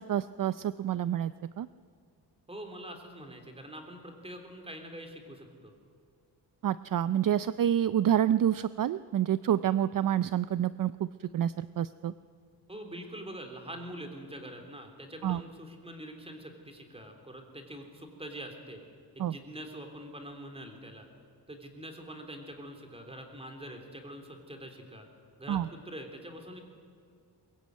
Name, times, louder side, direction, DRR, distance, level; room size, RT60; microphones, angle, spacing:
voice 1, 0.0-1.7 6.6-10.9 11.3-12.1 15.2-15.4 19.2-19.3 25.5-25.6, right 10 dB, 55° right, 15 dB, 0.5 m, -28 dB
voice 2, 2.5-5.7 12.7-18.8 19.1-21.1 21.5-25.1 25.4-26.6, right 1 dB, 15° right, 4 dB, 3.4 m, -44 dB
22.5 x 21.5 x 9.4 m, 2.4 s
wide cardioid pair, 150°, 41 cm